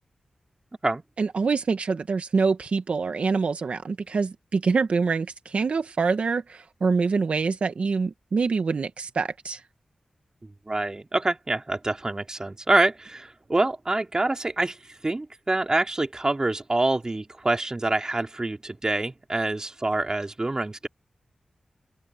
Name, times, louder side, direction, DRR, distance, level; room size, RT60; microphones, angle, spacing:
voice 1, 1.2-9.6, right 4 dB, 70° right, 1.4 m, -25 dB
voice 2, 10.7-14.8 15.0-20.9, right 2 dB, 30° right, 3.1 m, -26 dB
open air
cardioid pair, 60°, 2 cm